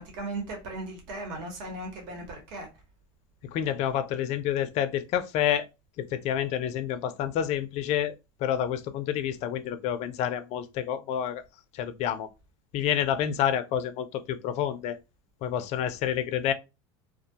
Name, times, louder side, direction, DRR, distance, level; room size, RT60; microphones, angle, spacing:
voice 1, 0.0-2.7, right 2 dB, 60° right, 1.1 m, -37 dB
voice 2, 3.5-5.7 6.0-8.1 8.4-11.4 11.7-12.3 12.7-15.0 15.4-16.5, left 10 dB, 50° left, 0.4 m, -28 dB
2.3 x 2.2 x 2.7 m
supercardioid pair, 115°, 15 cm